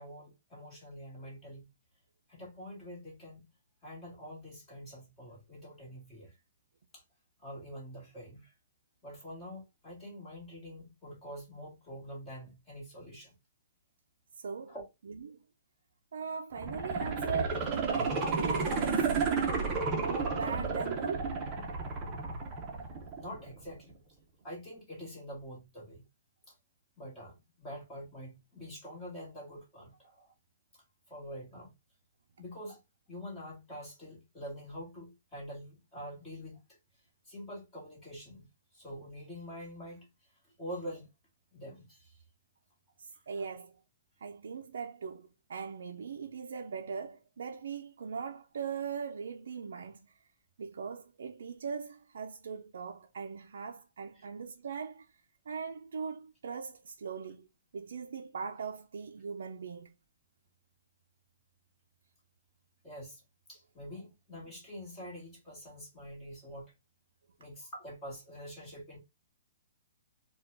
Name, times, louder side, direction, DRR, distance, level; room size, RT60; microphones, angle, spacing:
voice 1, 0.0-1.6 2.3-3.4 3.8-6.4 6.9-7.0 7.4-8.5 9.0-13.3 14.7-14.8 23.2-23.9 24.4-26.0 26.5-26.6 27.0-30.3 30.7-31.7 32.4-32.8 33.1-36.8 37.2-38.5 38.7-40.3 40.6-41.1 41.5-42.2 43.4-43.5 54.1-54.2 62.8-63.2 63.5-66.7 67.4-69.0, equal, 15° left, 1.5 m, -46 dB
voice 2, 14.4-14.7 15.1-15.4 16.1-19.2 19.9-21.4 43.0-43.8 44.2-50.2 50.6-55.1 55.5-57.5 57.7-59.9, right 6 dB, 75° right, 0.4 m, -40 dB
sound 1, 16.5-23.5 23.9-24.0, right 4 dB, 20° right, 0.7 m, -32 dB
4.2 x 2.2 x 2.5 m
hypercardioid pair, 175°, 0 cm